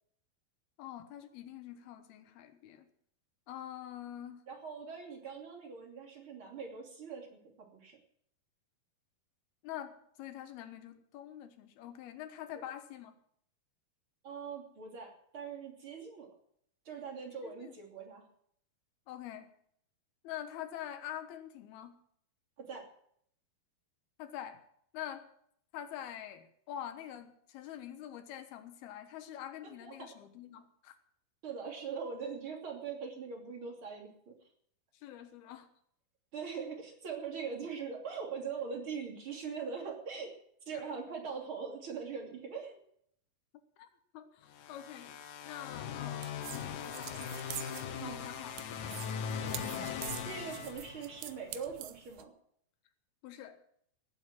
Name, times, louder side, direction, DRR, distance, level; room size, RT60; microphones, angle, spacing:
voice 1, 0.8-2.9 3.5-4.4 9.6-13.2 17.4-17.7 19.1-19.5 20.2-22.0 24.2-24.6 24.9-25.3 25.7-30.9 34.9-35.7 43.8-43.9 44.1-45.1 45.5-47.3 48.0-48.6 53.2-53.6, left 11 dB, 80° left, 9 dB, 3.2 m, -45 dB
voice 2, 4.5-7.4 7.7-8.0 12.6-12.7 14.2-16.3 16.9-18.3 22.6-22.9 29.8-29.9 31.4-34.3 36.3-40.3 40.7-42.8 46.1-46.2 48.0-48.2 49.8-49.9 50.3-52.3, right 6 dB, 35° right, 2 dB, 3.3 m, -42 dB
sound 1, 44.5-51.4, left 7 dB, 65° left, 2.3 m, -40 dB
sound 2, 46.2-52.2, right 13 dB, 75° right, 2.4 m, -46 dB
18.5 x 7.9 x 7.4 m, 0.66 s
omnidirectional pair, 4.4 m